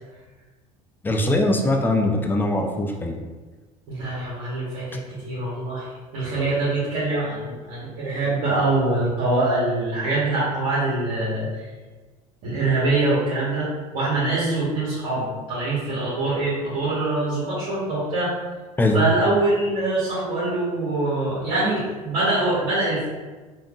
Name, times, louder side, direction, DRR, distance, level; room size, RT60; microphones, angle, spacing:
voice 1, 1.0-3.2 18.8-19.0, left 1 dB, 10° left, 2 dB, 0.4 m, -21 dB
voice 2, 3.9-11.7 12.4-18.3 18.9-23.1, right 2 dB, 65° right, -9 dB, 1.2 m, -24 dB
3.4 x 2.6 x 2.4 m, 1.3 s
hypercardioid pair, 70°, 20 cm